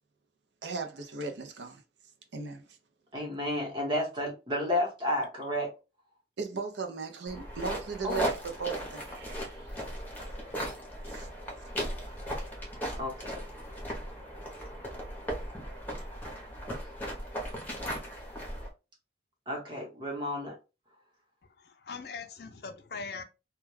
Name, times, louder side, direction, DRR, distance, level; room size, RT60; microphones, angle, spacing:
voice 1, 0.6-1.8 2.3-2.8 6.4-9.7 11.1-11.3, right 5 dB, 75° right, 0.5 m, -37 dB
voice 2, 3.1-5.7 8.0-8.2 13.0-13.4 19.5-20.5, left 1 dB, 25° right, 0.9 m, -32 dB
sound 1, 7.3-18.7, equal, 10° left, 0.7 m, -37 dB
voice 3, 21.6-23.2, left 4 dB, 60° left, 0.4 m, -41 dB
2.2 x 2.2 x 3.1 m
head